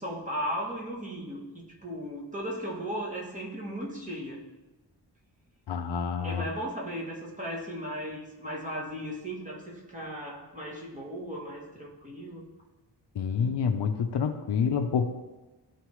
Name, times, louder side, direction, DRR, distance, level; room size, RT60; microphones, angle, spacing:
voice 1, 0.0-4.4 6.2-12.4, equal, 15° right, -4 dB, 1.4 m, -36 dB
voice 2, 5.7-6.5 13.2-15.0, left 6 dB, 70° left, 7 dB, 0.7 m, -28 dB
12.5 x 4.3 x 3.1 m, 1.2 s
wide cardioid pair, 180°, 44 cm